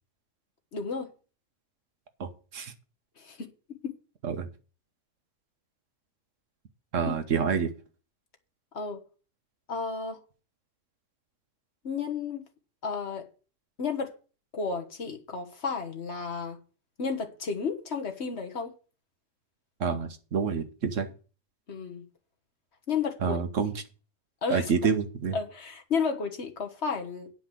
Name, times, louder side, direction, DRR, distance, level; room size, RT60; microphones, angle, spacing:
voice 1, 0.7-1.1 3.2-4.0 7.0-7.1 8.7-9.0 9.7-10.2 11.8-12.4 12.8-13.3 13.8-14.1 14.5-16.6 17.0-18.7 21.7-22.0 22.9-23.4 24.4-24.7 25.3-27.3, left 5 dB, 60° left, 1.7 m, -32 dB
voice 2, 2.2-2.7 4.2-4.5 6.9-7.7 19.8-21.1 23.2-23.7 24.5-25.4, right 6 dB, 85° right, 1.5 m, -28 dB
9.9 x 5.1 x 7.7 m
omnidirectional pair, 1.3 m